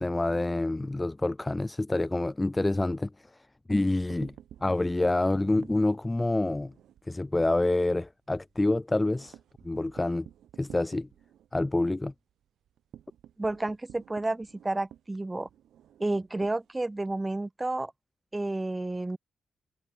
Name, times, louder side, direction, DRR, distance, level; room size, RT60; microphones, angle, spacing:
voice 1, 0.0-3.1 3.7-4.3 4.6-6.7 7.1-9.4 9.6-10.3 10.6-11.1 11.5-12.1, left 2 dB, 10° left, 0.6 m, -27 dB
sound 1, 4.1-7.1 7.5-7.6 7.9-8.0 8.4-17.2, right 10 dB, 85° right, 5.2 m, -53 dB
voice 2, 13.4-15.5 16.0-17.9 18.3-19.2, right 2 dB, 10° right, 1.9 m, -31 dB
wide cardioid pair, 180°, 0 cm